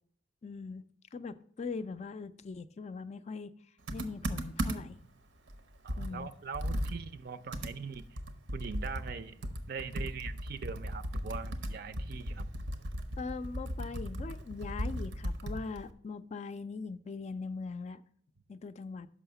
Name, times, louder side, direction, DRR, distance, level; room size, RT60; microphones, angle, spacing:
voice 1, 0.4-0.8 1.1-3.5 3.9-5.0 6.0-6.3 13.2-18.0 18.5-19.1, left 4 dB, 35° left, 12 dB, 0.3 m, -41 dB
Computer keyboard, 3.9-5.0 5.5-5.6 5.9-9.2 9.4-15.9, equal, 85° right, 0.8 m, -37 dB
voice 2, 5.8-8.1 8.5-9.4 9.7-12.5, right 5 dB, 55° right, 12 dB, 0.5 m, -42 dB
6.2 x 5.6 x 6.8 m, 0.64 s
head